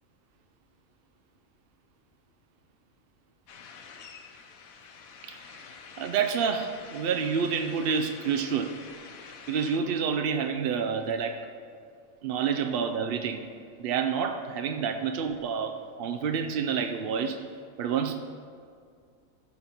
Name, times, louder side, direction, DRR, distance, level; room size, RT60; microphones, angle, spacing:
sound 1, 3.5-9.8, left 5 dB, 80° left, 1.2 m, -47 dB
voice 1, 5.2-5.6 6.0-8.7 9.5-11.4 12.2-13.4 13.8-17.4 17.8-18.2, right 6 dB, 60° right, 6 dB, 0.6 m, -28 dB
14.5 x 5.4 x 4.4 m, 2.3 s
omnidirectional pair, 1.4 m